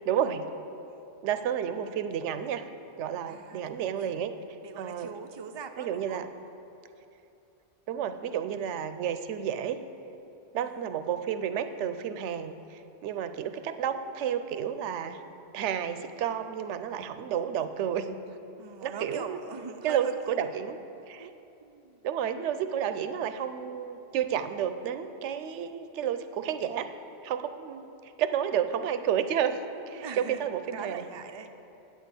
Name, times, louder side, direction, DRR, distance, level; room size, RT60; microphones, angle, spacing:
voice 1, 0.1-0.5 1.2-2.7 3.0-4.3 4.8-5.1 5.8-6.3 7.9-9.8 10.5-15.2 15.5-18.2 18.8-19.4 19.8-20.8 21.1-21.3 22.0-26.9 27.2-29.6 29.9-31.1, right 9 dB, 80° right, 10 dB, 0.9 m, -31 dB
voice 2, 3.3-4.2 4.6-6.2 10.5-10.9 18.6-20.6 21.2-21.3 21.6-22.1 30.0-30.4 30.7-31.5, right 6 dB, 40° right, 6 dB, 0.4 m, -41 dB
8.8 x 6.4 x 7.9 m, 2.8 s
omnidirectional pair, 1.2 m